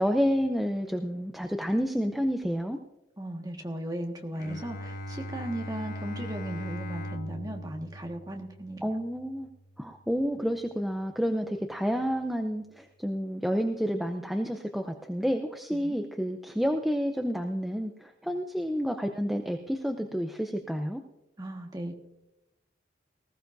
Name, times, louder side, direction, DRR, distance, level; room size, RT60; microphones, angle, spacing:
voice 1, 0.0-2.8 8.8-9.5 9.8-21.0, equal, ahead, 4 dB, 0.5 m, -29 dB
voice 2, 3.2-8.9 15.8-15.9 21.4-21.9, right 1 dB, 20° right, 1 dB, 1.5 m, -36 dB
Bowed string instrument, 4.4-10.1, equal, 45° left, 1.0 m, -40 dB
19.5 x 15.0 x 2.6 m, 0.92 s
head